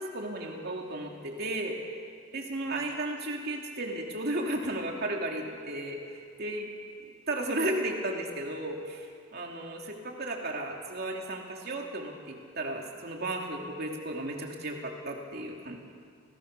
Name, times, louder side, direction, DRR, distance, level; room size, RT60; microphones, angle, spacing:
voice 1, 0.0-1.8 2.3-6.7 7.0-15.8, right 1 dB, 50° right, 1 dB, 2.9 m, -34 dB
29.5 x 18.0 x 6.8 m, 2.2 s
head